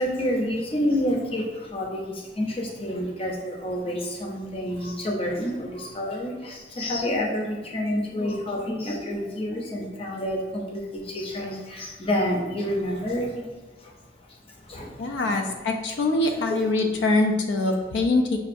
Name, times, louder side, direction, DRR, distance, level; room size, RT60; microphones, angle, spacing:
voice 1, 0.0-13.5 13.8-13.9 14.3-15.4 16.3-16.9, equal, 35° left, 0 dB, 0.6 m, -29 dB
voice 2, 15.0-18.4, left 2 dB, 85° left, 4 dB, 0.3 m, -23 dB
5.2 x 2.3 x 2.5 m, 1.3 s
head